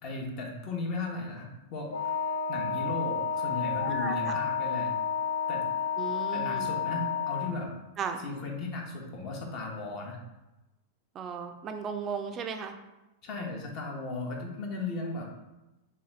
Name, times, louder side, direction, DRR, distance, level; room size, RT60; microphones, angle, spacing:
voice 1, 0.0-1.9 2.5-4.9 5.5-5.6 6.3-7.7 8.2-10.2 13.2-15.2, left 3 dB, 40° left, 1 dB, 0.9 m, -36 dB
Wind instrument woodwind instrument, 1.9-7.6, left 7 dB, 70° left, 0.3 m, -31 dB
voice 2, 3.8-4.4 6.0-6.7 8.0-8.2 11.2-12.8, right 6 dB, 30° right, 6 dB, 0.3 m, -36 dB
3.4 x 3.4 x 3.1 m, 1.0 s
figure-of-eight pair, 95°, 0 cm